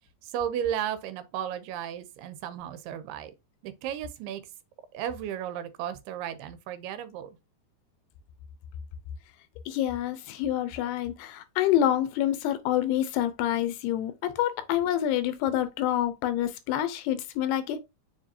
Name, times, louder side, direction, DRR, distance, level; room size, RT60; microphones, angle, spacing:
voice 1, 0.2-3.3 3.6-4.4 4.9-7.4, right 10 dB, 80° right, 2.7 m, -34 dB
voice 2, 9.7-17.8, left 11 dB, 85° left, 2.8 m, -27 dB
7.0 x 4.9 x 2.8 m
omnidirectional pair, 4.6 m